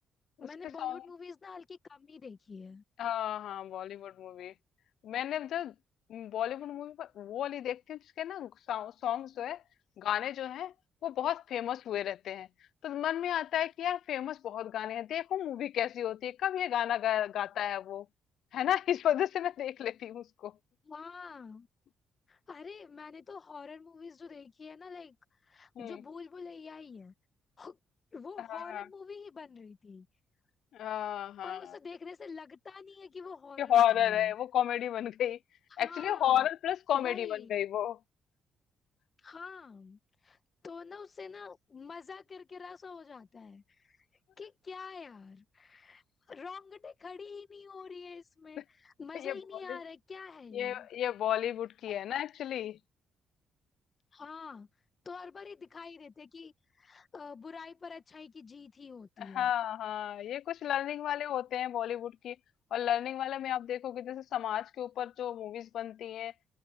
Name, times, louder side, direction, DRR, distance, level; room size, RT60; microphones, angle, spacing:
voice 1, 0.4-2.8 20.8-21.7 22.3-25.2 25.5-27.1 27.6-27.8 28.1-30.1 31.4-34.3 35.7-36.5 36.9-37.6 39.2-40.4 40.6-44.0 44.4-50.9 51.9-52.0 54.1-54.7 55.0-59.5, left 5 dB, 40° left, 1.6 m, -47 dB
voice 2, 3.0-4.5 5.0-5.7 6.1-9.6 10.0-10.7 11.0-12.5 12.8-18.1 18.5-20.5 25.8-25.9 28.4-28.8 30.7-31.8 33.6-35.4 35.8-38.0 49.1-49.4 49.7-49.8 50.5-52.8 59.2-62.4 62.7-66.3, left 11 dB, 70° left, 0.5 m, -32 dB
cardioid pair, 90°, 0 cm